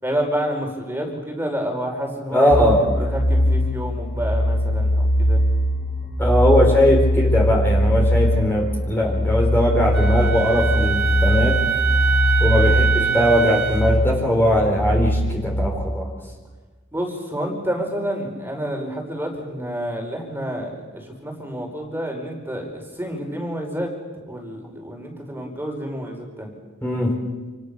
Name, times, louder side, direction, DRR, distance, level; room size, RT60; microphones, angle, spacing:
voice 1, 0.0-2.5 2.9-5.4 6.7-6.9 12.5-12.8 16.9-23.9 24.3-26.5, equal, 10° right, 2 dB, 5.0 m, -29 dB
voice 2, 2.3-3.1 6.2-11.6 12.4-16.1 26.8-27.1, equal, 10° left, -1 dB, 4.3 m, -19 dB
sound 1, 2.5-15.7, left 1 dB, 40° left, 7.3 m, -21 dB
Wind instrument woodwind instrument, 9.9-14.0, right 8 dB, 55° right, 2.5 m, -23 dB
28.5 x 27.5 x 6.8 m, 1.3 s
head